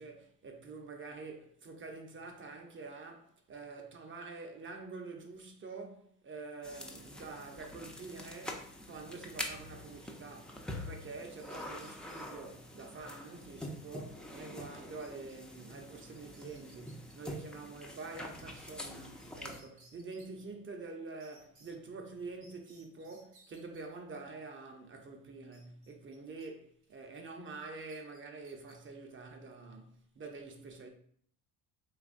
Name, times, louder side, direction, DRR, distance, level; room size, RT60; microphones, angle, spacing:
voice 1, 0.0-30.9, right 3 dB, 30° right, 0.7 m, -47 dB
sound 1, 6.6-19.6, left 1 dB, ahead, 0.5 m, -45 dB
sound 2, 11.4-12.3 15.0-15.4 15.7-15.8 16.1-17.2 19.2-19.3 19.5-20.3 21.2-21.7 22.4-23.8 25.5-26.5 26.8-27.1 27.8-28.8, right 2 dB, 60° right, 1.4 m, -62 dB
4.0 x 3.0 x 2.5 m
supercardioid pair, 90°, 41 cm